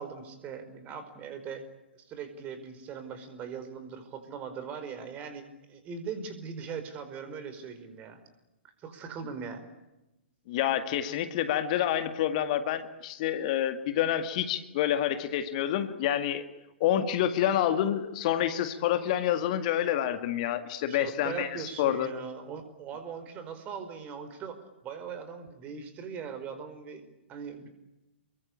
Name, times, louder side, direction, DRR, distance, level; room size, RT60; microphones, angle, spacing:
voice 1, 0.0-1.6 1.9-8.2 8.8-9.7 20.9-27.0 27.3-27.7, right 6 dB, 25° right, 10 dB, 4.9 m, -40 dB
voice 2, 10.5-16.4 16.8-22.1, left 11 dB, 40° left, 9 dB, 1.9 m, -28 dB
28.5 x 23.0 x 8.8 m, 0.98 s
figure-of-eight pair, 110°, 6 cm